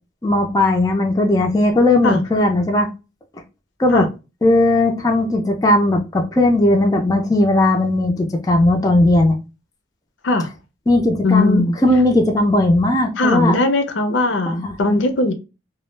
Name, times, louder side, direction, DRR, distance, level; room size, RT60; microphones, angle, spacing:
voice 1, 0.2-2.9 3.8-4.1 4.4-9.3 10.9-13.6 14.6-14.7, left 1 dB, 20° left, 0.3 m, -17 dB
voice 2, 11.2-11.8 13.2-15.3, left 2 dB, 75° left, 0.5 m, -18 dB
2.2 x 2.0 x 3.1 m
head